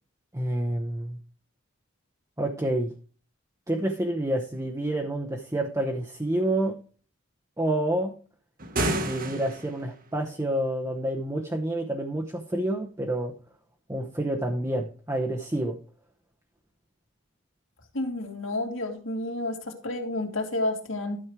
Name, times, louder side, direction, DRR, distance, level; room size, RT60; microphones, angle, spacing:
voice 1, 0.3-1.2 2.4-2.9 3.7-6.8 7.6-8.1 9.0-13.3 13.9-15.8, right 1 dB, 15° right, 1 dB, 0.9 m, -28 dB
sound 1, 8.6-9.9, right 1 dB, 45° right, 1.3 m, -29 dB
voice 2, 17.9-21.2, left 2 dB, 75° left, 2 dB, 2.5 m, -30 dB
12.0 x 6.3 x 4.8 m, 0.39 s
head